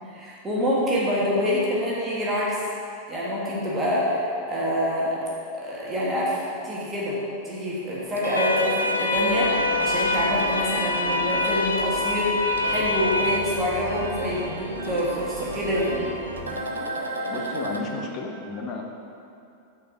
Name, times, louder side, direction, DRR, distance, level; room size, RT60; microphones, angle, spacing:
voice 1, 0.1-2.6 3.1-5.2 5.5-16.0, equal, 20° right, -7 dB, 1.4 m, -26 dB
sound 1, 7.8-17.8, right 1 dB, 75° right, 0.6 m, -34 dB
sound 2, 8.4-13.4, left 2 dB, 70° left, 0.4 m, -25 dB
sound 3, 9.1-16.5, right 1 dB, 40° right, 1.4 m, -43 dB
voice 2, 17.3-18.8, left 3 dB, 35° left, 1 dB, 0.8 m, -33 dB
6.2 x 4.1 x 5.9 m, 2.6 s
figure-of-eight pair, 90°, 0 cm